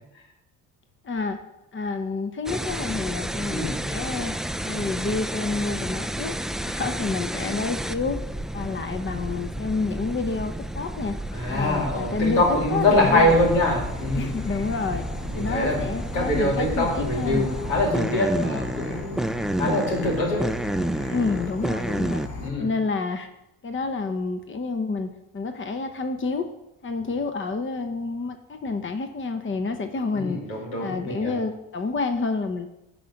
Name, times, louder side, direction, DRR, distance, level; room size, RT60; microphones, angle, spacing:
voice 1, 1.0-1.4 1.7-4.3 4.6-6.3 6.6-8.2 8.5-11.2 11.5-12.4 12.7-13.4 14.2-15.0 15.3-17.5 21.1-22.2 22.6-23.3 23.6-26.5 26.8-30.4 30.8-32.7, left 3 dB, 30° left, 7 dB, 1.0 m, -28 dB
sound 1, 2.5-22.3, right 1 dB, ahead, 0.3 m, -31 dB
voice 2, 3.5-3.8 11.3-14.4 15.3-15.9 16.1-19.2 19.6-20.4 22.4-22.7 30.1-31.4, left 1 dB, 90° left, -2 dB, 2.7 m, -24 dB
Insect / Frog, 13.3-22.5, left 2 dB, 60° left, 2.5 m, -36 dB
10.0 x 3.9 x 7.1 m, 0.89 s
hypercardioid pair, 55°, 38 cm